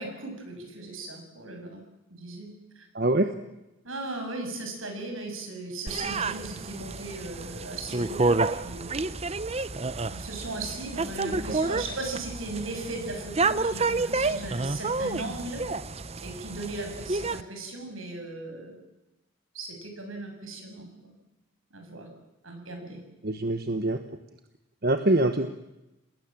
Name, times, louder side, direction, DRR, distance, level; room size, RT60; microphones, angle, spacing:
voice 1, 0.0-1.8 2.1-2.9 3.8-9.0 10.1-15.6 16.2-18.8 19.5-21.1 21.7-22.1 22.4-23.0, right 2 dB, 75° right, 4 dB, 7.2 m, -37 dB
voice 2, 2.9-3.3 11.3-11.6 23.2-24.0 24.8-25.5, right 1 dB, 45° right, 8 dB, 1.2 m, -24 dB
sound 1, 5.9-17.4, right 3 dB, 30° right, 0.8 m, -30 dB
29.0 x 19.5 x 7.5 m, 0.97 s
head